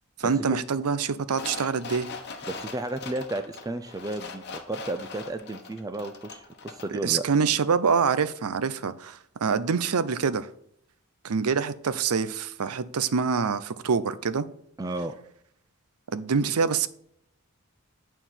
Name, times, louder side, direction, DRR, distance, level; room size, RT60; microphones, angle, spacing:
voice 1, 0.2-2.1 7.0-10.5 11.2-14.5 16.1-16.9, right 5 dB, 90° right, 0.6 m, -25 dB
sound 1, 1.3-7.0 7.3-7.4, left 4 dB, 50° left, 1.1 m, -41 dB
voice 2, 2.5-7.2 14.8-15.1, right 2 dB, 15° right, 0.4 m, -33 dB
9.0 x 4.6 x 5.6 m
head